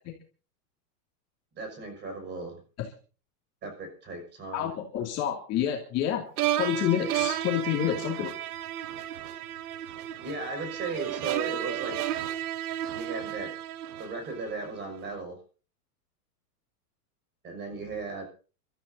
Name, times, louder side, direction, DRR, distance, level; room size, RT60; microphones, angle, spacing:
voice 1, 1.6-2.6 3.6-4.7 10.2-12.0 12.9-13.5 14.0-15.4 17.4-18.2, right 3 dB, 25° right, 3 dB, 5.9 m, -36 dB
voice 2, 4.5-6.2 6.6-8.3, left 11 dB, 35° left, 0 dB, 2.6 m, -28 dB
sound 1, 6.4-14.6, right 12 dB, 70° right, 1.5 m, -33 dB
30.0 x 13.5 x 2.7 m, 0.37 s
supercardioid pair, 155°, 47 cm